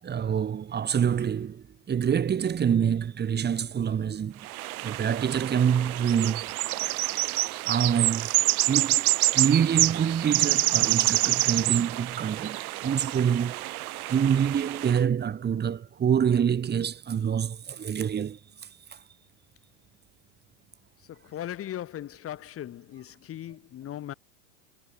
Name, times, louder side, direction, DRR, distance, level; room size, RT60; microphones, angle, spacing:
voice 1, 0.0-4.4 4.8-6.5 7.7-8.4 8.7-13.7 14.1-18.4 18.9-19.0, right 8 dB, 20° right, 6.2 m, -26 dB
sound 1, 4.4-15.0, right 17 dB, 65° right, 2.1 m, -27 dB
voice 2, 21.0-24.1, left 12 dB, 30° left, 5.3 m, -38 dB
supercardioid pair, 135°, 46 cm